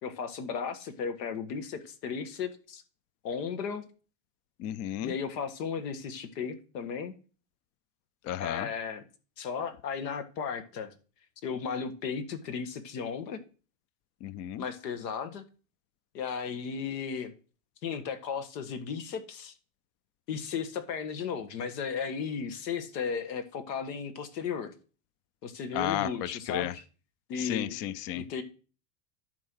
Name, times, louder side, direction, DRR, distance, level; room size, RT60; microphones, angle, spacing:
voice 1, 0.0-2.8 3.2-3.8 5.0-7.1 8.4-9.0 9.4-10.9 11.4-13.4 14.6-15.4 16.1-17.3 17.8-19.5 20.3-24.7 25.4-26.8 27.3-27.8 28.1-28.4, left 6 dB, 85° left, 1.8 m, -35 dB
voice 2, 4.6-5.1 8.2-8.7 14.2-14.6 25.7-26.7 27.4-28.2, left 12 dB, 35° left, 0.4 m, -33 dB
10.5 x 4.7 x 6.3 m
supercardioid pair, 130°, 48 cm